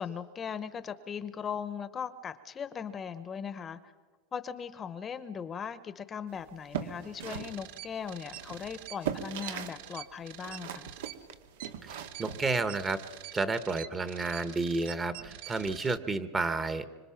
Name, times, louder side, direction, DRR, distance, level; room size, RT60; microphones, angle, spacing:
voice 1, 0.0-3.9 4.3-10.9, left 7 dB, 25° left, 12 dB, 0.9 m, -39 dB
sound 1, 6.5-9.8 10.1-13.2, right 8 dB, 85° right, 1.9 m, -40 dB
sound 2, 7.2-16.0, right 12 dB, 65° right, 1.1 m, -46 dB
voice 2, 11.8-13.0 13.3-16.8, right 3 dB, 15° right, 12 dB, 1.1 m, -31 dB
25.5 x 25.0 x 5.8 m, 1.4 s
supercardioid pair, 140°, 0 cm